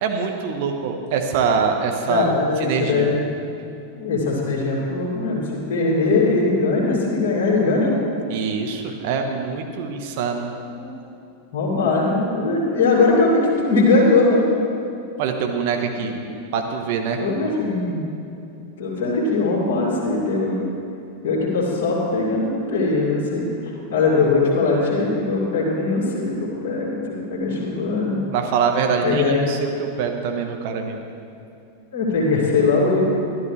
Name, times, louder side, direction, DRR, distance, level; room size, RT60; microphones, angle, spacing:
voice 1, 0.0-2.2 2.6-3.1 8.3-10.5 15.2-16.1 16.5-17.2 28.3-31.0, right 6 dB, 50° right, 4 dB, 1.2 m, -24 dB
voice 2, 2.0-3.3 3.9-7.9 10.7-10.9 11.5-14.4 15.9-16.1 17.2-18.0 18.8-20.6 21.2-28.2 29.0-29.4 31.9-33.0, left 3 dB, 50° left, -5 dB, 2.5 m, -20 dB
13.0 x 12.0 x 3.3 m, 2.7 s
figure-of-eight pair, 90°, 0 cm